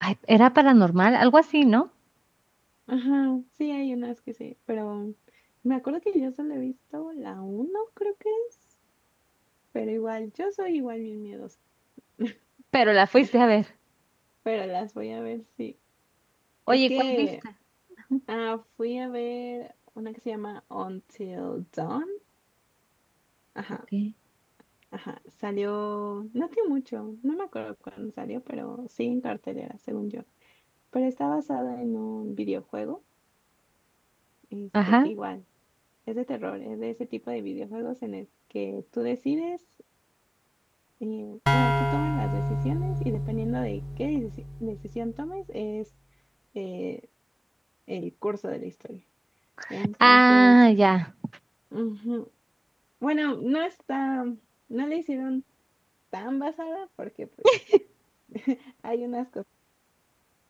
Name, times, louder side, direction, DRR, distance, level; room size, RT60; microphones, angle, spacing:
voice 1, 0.0-1.9 12.7-13.6 16.7-16.9 17.2-17.3 18.1-18.2 23.9-24.1 34.7-35.1 49.6-51.1 57.4-57.8, right 2 dB, 75° right, 0.6 m, -18 dB
voice 2, 2.9-5.1 5.6-8.5 9.7-11.5 12.2-12.4 13.2-13.4 14.4-15.7 16.7-17.4 18.3-22.2 23.6-23.9 24.9-30.2 30.9-33.0 34.5-35.4 36.1-38.3 38.5-39.6 41.0-44.3 44.6-45.9 46.5-47.0 47.9-49.0 49.7-50.6 51.7-52.3 53.0-54.4 54.7-55.4 56.1-57.3 58.3-59.4, equal, 5° right, 1.2 m, -31 dB
sound 1, 41.5-45.1, equal, 10° left, 2.4 m, -28 dB
wide cardioid pair, 40°, 0 cm